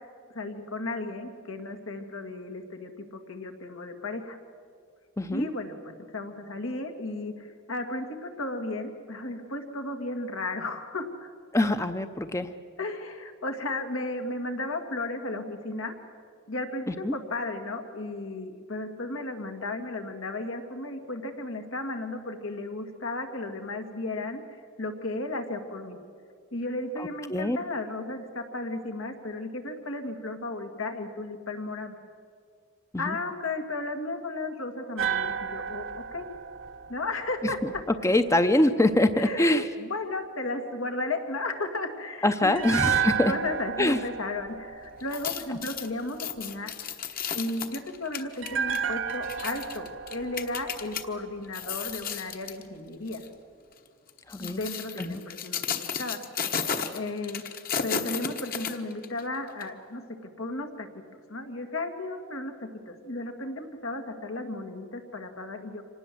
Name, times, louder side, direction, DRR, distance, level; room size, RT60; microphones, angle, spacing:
voice 1, 0.3-4.4 5.3-11.3 12.8-15.9 16.5-26.0 26.5-32.0 33.0-36.3 36.9-37.8 39.2-42.9 43.3-46.7 47.3-53.2 54.4-56.2 56.9-57.4 57.8-60.9 61.1-65.8, left 2 dB, 85° left, 5 dB, 2.2 m, -34 dB
voice 2, 5.2-5.5 11.5-12.5 16.9-17.1 27.0-27.6 32.9-33.2 38.0-39.7 42.2-43.3 43.8-44.0 54.3-54.6 55.0-55.2, left 1 dB, 15° left, 10 dB, 0.6 m, -24 dB
sound 1, 35.0-38.1 42.5-45.8 48.4-51.6 51.9-52.0, right 7 dB, 65° right, 0.9 m, -32 dB
sound 2, 45.0-51.0 51.4-52.6 53.1-53.3 54.1-59.2 59.6-59.7, left 7 dB, 45° left, 1.2 m, -34 dB
26.0 x 19.0 x 7.7 m, 2.2 s
head